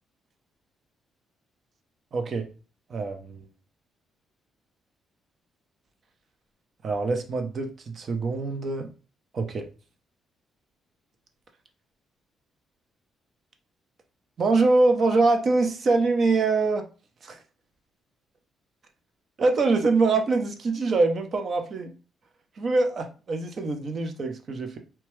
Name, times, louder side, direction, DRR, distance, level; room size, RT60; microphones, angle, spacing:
voice 1, 2.1-2.5 2.9-3.4 6.8-8.9 9.3-9.7 14.4-16.8 17.2-17.4 19.4-21.9 22.6-24.8, right 3 dB, 50° right, 6 dB, 0.6 m, -24 dB
2.8 x 2.2 x 3.0 m, 0.34 s
cardioid pair, 90°, 0 cm